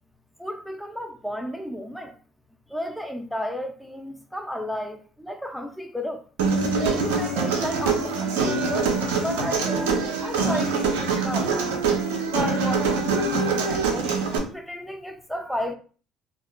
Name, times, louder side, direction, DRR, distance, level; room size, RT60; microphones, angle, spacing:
voice 1, 0.4-2.1 2.7-6.2 6.8-11.7 12.3-15.7, equal, ahead, 0.5 m, -33 dB
Human voice, 6.4-14.4, right 4 dB, 90° right, 0.6 m, -24 dB
2.6 x 2.4 x 2.2 m
supercardioid pair, 75°, 0 cm